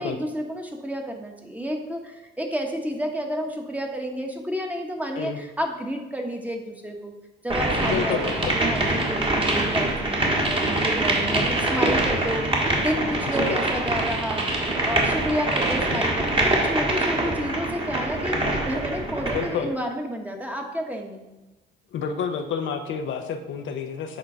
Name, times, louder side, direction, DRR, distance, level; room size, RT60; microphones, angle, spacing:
voice 1, 0.0-7.1 7.4-14.5 14.8-21.2, equal, 5° right, 2 dB, 1.2 m, -30 dB
sound 1, 7.5-19.6, right 2 dB, 25° right, 1.7 m, -24 dB
voice 2, 7.8-8.5 13.2-13.6 19.3-19.7 21.9-24.2, left 6 dB, 75° left, 6 dB, 0.8 m, -29 dB
8.2 x 3.8 x 5.6 m, 1.1 s
cardioid pair, 90°, 20 cm